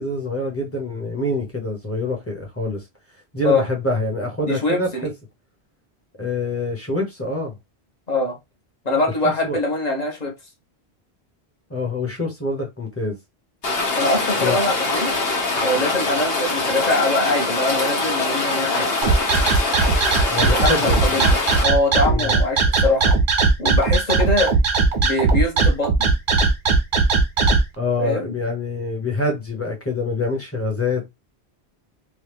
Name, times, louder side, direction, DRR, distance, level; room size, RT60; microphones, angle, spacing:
voice 1, 0.0-2.8 3.3-5.1 6.2-7.6 9.4-9.6 11.7-13.2 14.4-14.6 20.3-21.2 22.0-22.3 27.8-31.1, left 2 dB, 15° left, 0.9 m, -25 dB
voice 2, 4.5-5.1 8.1-8.4 8.8-10.3 13.9-15.1 15.6-18.9 20.4-23.1 23.6-24.5 25.0-26.1 28.0-28.3, left 2 dB, 40° left, 1.0 m, -23 dB
Rain, 13.6-21.6, left 2 dB, 65° left, 1.2 m, -23 dB
sound 1, 19.0-27.6, right 4 dB, 55° right, 0.8 m, -18 dB
3.1 x 2.2 x 3.3 m
omnidirectional pair, 1.1 m